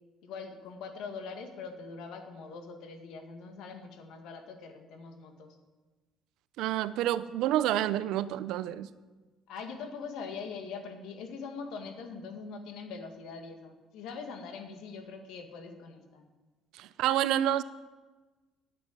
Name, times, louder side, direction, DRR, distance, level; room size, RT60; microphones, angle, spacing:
voice 1, 0.2-5.6 9.5-16.2, left 5 dB, 70° left, 6 dB, 2.0 m, -42 dB
voice 2, 6.6-8.9 16.7-17.6, right 12 dB, 75° right, 15 dB, 0.6 m, -28 dB
10.0 x 8.7 x 9.1 m, 1.2 s
cardioid pair, 160°, 0 cm